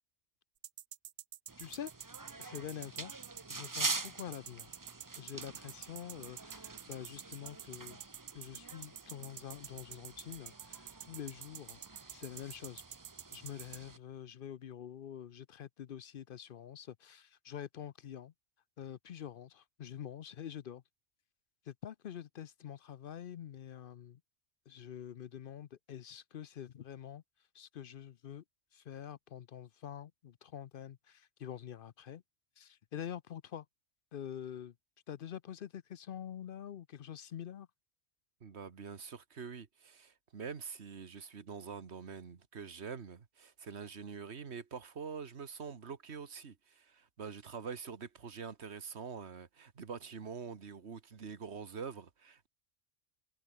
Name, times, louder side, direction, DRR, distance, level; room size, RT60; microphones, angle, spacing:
sound 1, 0.6-13.8, right 10 dB, 55° right, 0.6 m, -48 dB
sound 2, 1.5-14.0, right 3 dB, 20° right, 0.8 m, -45 dB
voice 1, 1.6-1.9 2.4-3.1 3.5-4.7 5.2-8.0 8.3-11.8 12.1-12.8 13.3-18.3 18.8-20.8 21.6-24.2 24.7-27.2 27.5-28.4 28.7-32.2 32.6-33.7 34.1-34.7 35.1-37.7, left 9 dB, 60° left, 0.7 m, -46 dB
voice 2, 38.4-52.5, right 6 dB, 75° right, 1.7 m, -45 dB
omnidirectional pair, 1.1 m